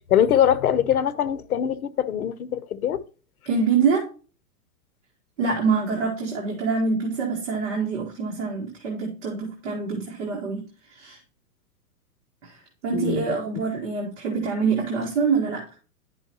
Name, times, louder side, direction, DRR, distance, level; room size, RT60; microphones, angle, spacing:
voice 1, 0.1-3.0 12.9-13.2, left 10 dB, 65° left, 0.8 m, -22 dB
voice 2, 3.5-4.1 5.4-10.6 10.9-11.2 12.4-12.5 12.8-15.6, right 5 dB, 50° right, 1.8 m, -25 dB
10.5 x 5.5 x 3.0 m
supercardioid pair, 180°, 47 cm